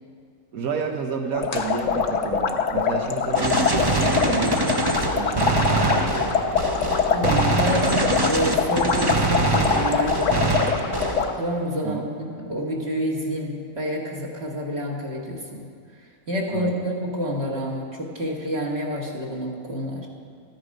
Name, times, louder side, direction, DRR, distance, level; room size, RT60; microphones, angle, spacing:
voice 1, 0.5-6.4 11.8-12.1 16.5-16.9, right 5 dB, 80° right, 2 dB, 1.4 m, -30 dB
sound 1, 1.3-11.3, left 6 dB, 65° left, 1.2 m, -24 dB
sound 2, 1.4-2.6, left 3 dB, 30° left, 0.9 m, -39 dB
Gunshot gunfire, 3.4-11.4, right 2 dB, 25° right, 0.6 m, -24 dB
voice 2, 7.1-10.6 11.1-15.7 16.3-20.1, equal, 50° right, -3 dB, 1.8 m, -28 dB
14.0 x 10.0 x 5.2 m, 2.1 s
omnidirectional pair, 1.5 m